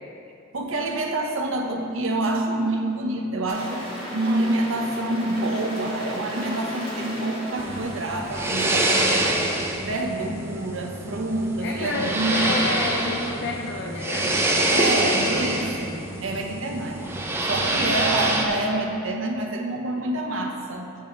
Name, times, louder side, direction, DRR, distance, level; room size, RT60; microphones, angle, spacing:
voice 1, 0.5-9.5 9.8-12.7 14.6-17.2 17.5-21.0, right 2 dB, 65° right, 2 dB, 0.8 m, -27 dB
sound 1, 3.5-8.9, equal, 25° left, 1.5 m, -36 dB
sound 2, 7.6-18.5, right 1 dB, 10° right, 0.6 m, -26 dB
voice 2, 11.6-15.7, left 3 dB, 55° left, 1 dB, 0.5 m, -30 dB
7.9 x 7.3 x 3.8 m, 2.7 s
head